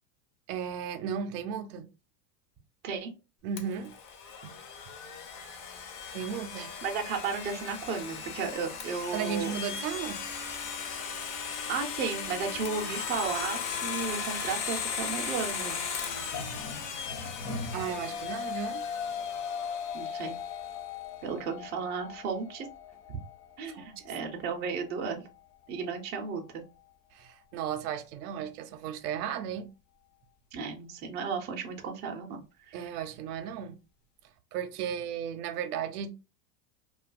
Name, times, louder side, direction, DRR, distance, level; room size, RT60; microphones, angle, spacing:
voice 1, 0.5-1.9 3.4-3.9 4.4-4.6 6.1-6.7 9.1-10.2 17.7-19.2 23.7-24.0 27.1-29.7 32.7-33.8 34.5-36.1, right 8 dB, 65° right, 0.6 m, -35 dB
Domestic sounds home sounds, 3.6-20.3, left 6 dB, 40° left, 0.6 m, -37 dB
voice 2, 6.6-9.5 11.7-15.9 19.9-20.3 21.2-22.7 23.1-23.2 23.6-25.3 25.7-26.6 30.5-32.4 32.7-33.0, right 5 dB, 25° right, 0.4 m, -34 dB
sound 1, 12.3-18.1, left 2 dB, 55° left, 1.0 m, -44 dB
sound 2, 17.3-26.4, left 7 dB, 80° left, 0.7 m, -40 dB
2.5 x 2.3 x 2.4 m
supercardioid pair, 115°, 49 cm